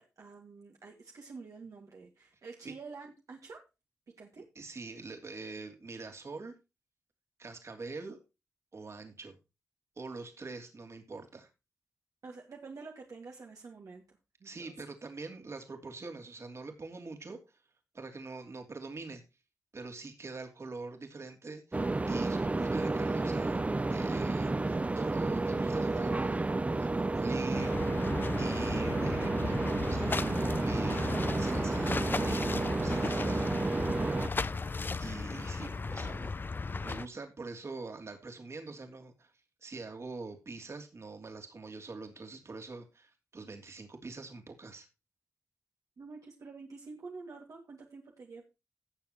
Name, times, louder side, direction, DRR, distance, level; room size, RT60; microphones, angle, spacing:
voice 1, 0.0-3.6 4.1-4.5 12.2-14.0 14.4-14.7 46.0-48.4, right 4 dB, 75° right, 0 dB, 2.2 m, -48 dB
voice 2, 4.4-6.5 7.4-8.2 8.7-9.4 10.0-11.5 14.4-17.4 17.9-19.2 19.7-23.6 23.9-27.7 28.4-33.5 35.0-36.3 36.8-39.3 39.6-44.9, right 3 dB, 55° right, 5 dB, 2.9 m, -44 dB
sound 1, 21.7-34.3, right 2 dB, 25° right, 0.6 m, -31 dB
sound 2, 27.5-37.1, left 4 dB, 35° left, 0.6 m, -36 dB
17.0 x 7.1 x 3.0 m, 0.27 s
wide cardioid pair, 80°, 6 cm